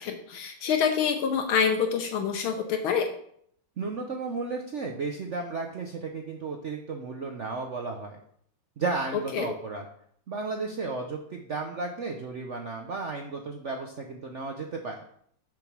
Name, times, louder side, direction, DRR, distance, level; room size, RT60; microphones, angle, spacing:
voice 1, 0.0-3.1 9.3-9.5, left 7 dB, 75° left, 6 dB, 1.5 m, -26 dB
voice 2, 3.8-8.2 8.8-9.8 10.3-15.1, right 3 dB, 85° right, 3 dB, 0.6 m, -34 dB
7.0 x 5.1 x 6.0 m, 0.66 s
omnidirectional pair, 2.3 m